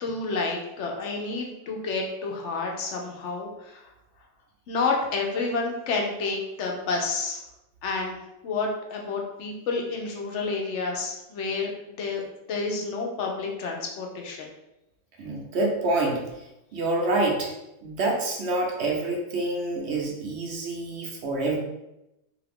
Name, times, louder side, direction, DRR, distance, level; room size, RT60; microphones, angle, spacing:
voice 1, 0.0-3.8 4.7-7.4 7.8-8.2 8.4-12.2 12.5-14.5, left 4 dB, 75° left, 1 dB, 0.9 m, -29 dB
voice 2, 15.2-16.2 16.7-17.5 17.8-21.6, right 2 dB, 65° right, 0 dB, 0.9 m, -27 dB
2.7 x 2.5 x 3.4 m, 0.90 s
omnidirectional pair, 1.3 m